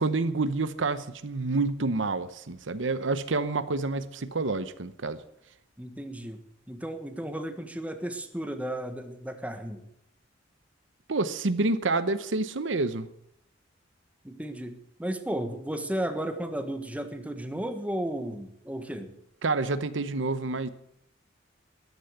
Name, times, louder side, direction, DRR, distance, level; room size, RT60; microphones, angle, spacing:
voice 1, 0.0-5.2 11.1-13.1 19.4-20.7, right 3 dB, 80° right, 13 dB, 0.9 m, -28 dB
voice 2, 5.8-6.4 6.7-9.8 14.2-19.1, right 1 dB, 10° right, 7 dB, 1.4 m, -34 dB
14.0 x 10.5 x 7.9 m, 0.75 s
head